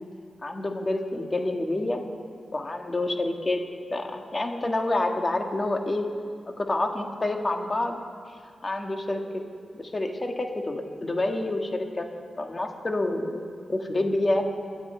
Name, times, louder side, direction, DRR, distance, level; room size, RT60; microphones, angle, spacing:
voice 1, 0.4-2.0 2.5-3.6 3.9-6.1 6.6-8.0 8.6-9.4 9.7-12.1 12.4-13.4 13.7-14.5, left 2 dB, 35° left, 3 dB, 1.6 m, -28 dB
23.5 x 9.2 x 4.4 m, 2.3 s
cardioid pair, 65°, 0 cm